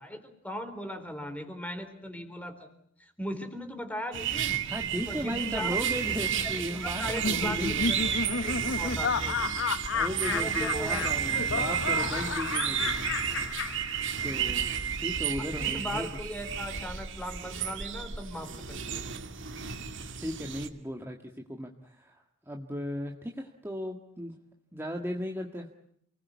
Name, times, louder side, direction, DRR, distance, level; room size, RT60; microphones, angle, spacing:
voice 1, 0.0-2.7 3.0-4.6 5.0-8.0 8.2-9.4 10.3-11.8 15.6-18.9, equal, 5° left, 7 dB, 4.0 m, -39 dB
sound 1, 4.1-20.7, right 8 dB, 65° right, 2.4 m, -32 dB
voice 2, 4.7-7.9 9.9-13.8 14.2-14.7 15.0-16.1 20.2-22.2 22.5-24.3 24.7-25.7, equal, 10° right, 2 dB, 1.9 m, -36 dB
Laughter, 7.0-14.5, left 5 dB, 65° left, 1.0 m, -32 dB
29.5 x 20.5 x 8.4 m, 0.71 s
head